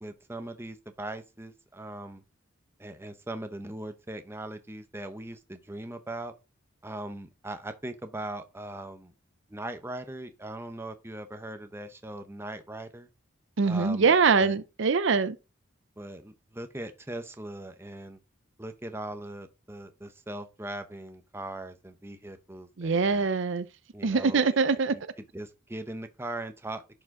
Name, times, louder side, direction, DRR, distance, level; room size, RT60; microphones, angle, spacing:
voice 1, 0.0-2.2 2.8-6.3 6.8-9.1 9.5-13.1 13.6-14.5 16.0-18.2 18.6-23.3 23.9-24.6 25.3-26.8, right 1 dB, 10° right, 0.7 m, -40 dB
voice 2, 13.6-15.4 22.8-23.7 24.0-24.9, right 4 dB, 60° right, 0.5 m, -23 dB
11.0 x 5.0 x 3.6 m
head